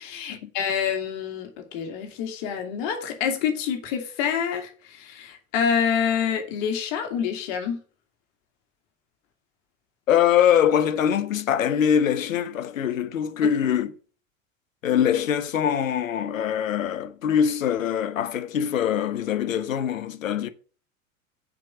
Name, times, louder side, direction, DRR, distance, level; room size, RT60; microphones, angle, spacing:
voice 1, 0.0-7.8 13.4-13.5, left 7 dB, 50° left, 2.4 m, -27 dB
voice 2, 10.1-13.9 14.8-20.5, left 9 dB, 70° left, 1.0 m, -23 dB
7.5 x 5.3 x 6.8 m
figure-of-eight pair, 85°, 41 cm